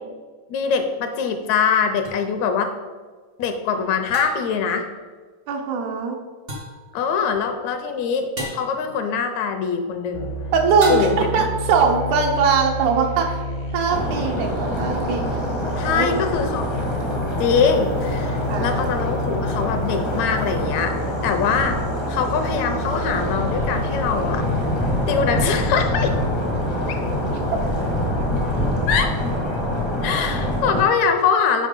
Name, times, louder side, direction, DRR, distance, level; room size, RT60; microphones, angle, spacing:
voice 1, 0.5-2.7 3.4-4.9 6.9-10.3 10.9-11.3 15.8-16.7 17.4-21.0 21.2-21.8 22.1-24.4 25.1-26.1 26.9-27.0 28.9-29.1 30.0-31.7, left 6 dB, 80° left, 6 dB, 1.9 m, -23 dB
sound 1, 2.0-2.2 4.1-4.6 6.5-6.8 8.4-8.7 10.8-11.4, equal, 65° right, 0.5 m, -30 dB
voice 2, 5.5-6.2 10.5-13.4 13.7-15.4 15.9-16.1 18.5-18.9, right 5 dB, 85° right, 3 dB, 2.3 m, -21 dB
sound 2, 10.1-28.7, equal, 65° left, 0.7 m, -30 dB
sound 3, 13.9-30.8, left 1 dB, 45° left, 0.3 m, -25 dB
6.4 x 5.2 x 5.2 m, 1.4 s
omnidirectional pair, 3.4 m